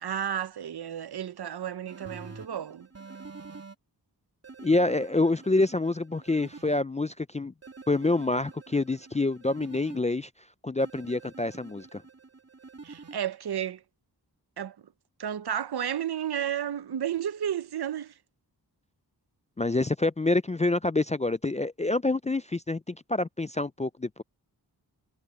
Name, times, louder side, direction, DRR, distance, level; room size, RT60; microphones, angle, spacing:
voice 1, 0.0-2.9 12.8-13.8 14.6-14.8 15.2-18.1, right 9 dB, 70° right, 0.7 m, -32 dB
sound 1, 1.9-3.8 4.4-6.8 7.6-10.0 10.8-13.2, right 4 dB, 35° right, 3.0 m, -47 dB
voice 2, 4.6-7.5 7.9-10.3 10.6-12.0 19.6-24.2, left 2 dB, 20° left, 0.3 m, -27 dB
wide cardioid pair, 100°, 41 cm